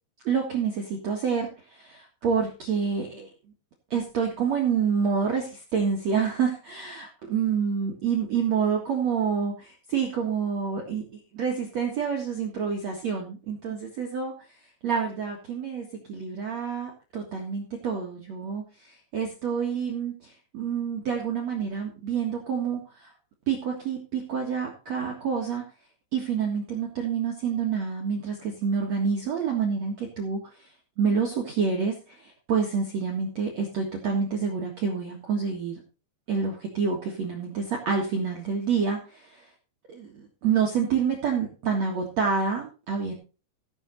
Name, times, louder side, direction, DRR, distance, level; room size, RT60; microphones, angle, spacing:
voice 1, 0.2-3.3 3.9-14.6 14.8-23.1 23.5-25.6 26.1-35.8 36.3-39.5 39.9-43.1, right 6 dB, 55° right, 0 dB, 2.0 m, -28 dB
15.5 x 7.8 x 4.0 m, 0.33 s
omnidirectional pair, 5.5 m